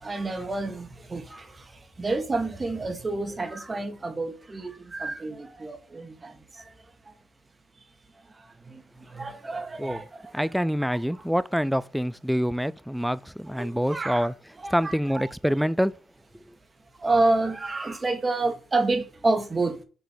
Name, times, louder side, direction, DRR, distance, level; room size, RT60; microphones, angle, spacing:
voice 1, 0.0-1.5 2.0-6.3 8.7-8.8 9.1-10.5 10.9-11.0 13.5-14.3 14.6-15.3 17.0-19.8, right 2 dB, 25° right, 1.7 m, -28 dB
voice 2, 10.3-14.3 14.7-15.9, equal, ahead, 0.3 m, -26 dB
6.7 x 4.1 x 4.6 m
cardioid pair, 90°, 0 cm